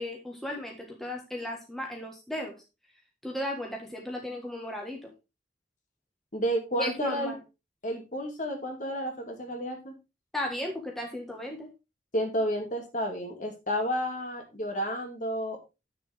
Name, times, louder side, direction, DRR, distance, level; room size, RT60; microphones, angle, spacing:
voice 1, 0.0-2.5 3.2-5.1 6.8-7.4 10.3-11.7, left 1 dB, ahead, 0 dB, 1.6 m, -35 dB
voice 2, 6.3-7.3 7.8-10.0 12.1-15.6, equal, 45° left, 3 dB, 2.3 m, -31 dB
9.3 x 6.8 x 3.6 m, 0.27 s
head